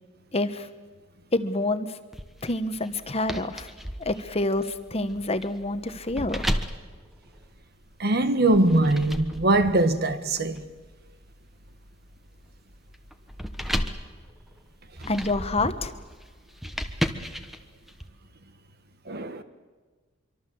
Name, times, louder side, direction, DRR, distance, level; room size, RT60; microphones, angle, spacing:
voice 1, 0.3-0.7 1.3-2.0 2.4-3.7 4.0-6.4 15.1-15.9, left 2 dB, 30° left, 1.2 m, -27 dB
sound 1, 2.1-7.9 8.5-18.1, equal, ahead, 1.2 m, -35 dB
voice 2, 8.0-10.7 19.1-19.4, right 2 dB, 50° right, 1.4 m, -22 dB
25.5 x 24.0 x 7.9 m
head